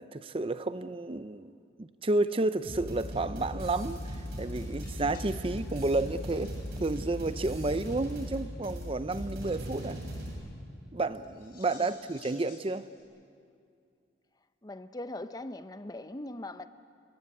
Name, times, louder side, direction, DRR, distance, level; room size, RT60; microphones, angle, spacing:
voice 1, 0.0-6.5 6.8-10.0 10.9-12.8, right 2 dB, 30° right, 0.6 m, -31 dB
sound 1, 2.6-10.3, equal, 60° right, 7.5 m, -38 dB
sound 2, 4.8-7.1 7.3-7.5 7.8-7.9 8.1-8.2 11.1-13.0, left 3 dB, 55° left, 7.7 m, -56 dB
voice 2, 14.6-16.7, left 1 dB, 20° left, 0.7 m, -40 dB
28.5 x 21.5 x 9.5 m
head